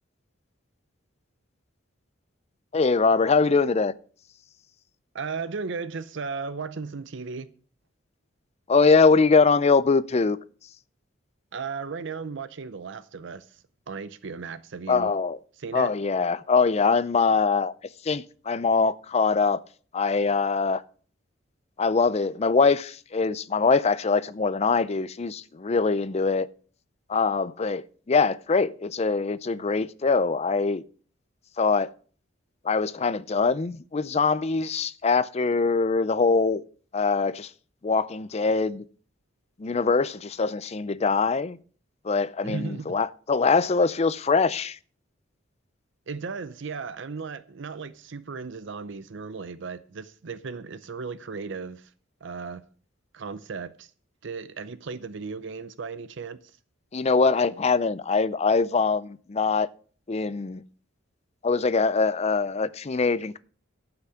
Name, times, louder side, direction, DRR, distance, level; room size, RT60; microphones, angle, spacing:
voice 1, 2.7-3.9 8.7-10.4 14.9-15.4 15.7-17.7 18.0-19.6 19.9-20.8 21.8-26.5 27.1-30.8 31.6-31.9 32.6-36.6 36.9-37.5 37.8-38.8 39.6-41.6 42.0-44.8 56.9-59.7 60.1-60.6 61.4-63.4, left 4 dB, 30° left, 0.5 m, -23 dB
voice 2, 5.1-7.5 11.5-15.1 15.6-15.9 42.4-43.0 46.1-51.9 52.2-52.6 53.1-53.9 54.2-56.4, right 5 dB, 65° right, 0.6 m, -36 dB
11.5 x 5.9 x 7.0 m
head